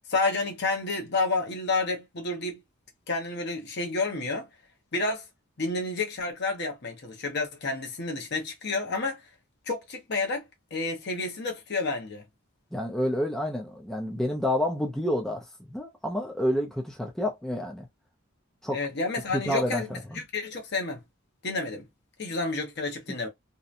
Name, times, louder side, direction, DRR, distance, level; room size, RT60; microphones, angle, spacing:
voice 1, 0.1-2.6 3.1-4.5 4.9-5.2 5.6-9.2 9.7-10.4 10.7-12.2 18.7-21.0 21.4-21.9 22.2-23.3, left 3 dB, 50° left, 0.8 m, -30 dB
voice 2, 12.7-17.9 18.6-18.8 19.3-20.2 23.1-23.2, equal, ahead, 0.4 m, -29 dB
2.8 x 2.1 x 2.4 m
head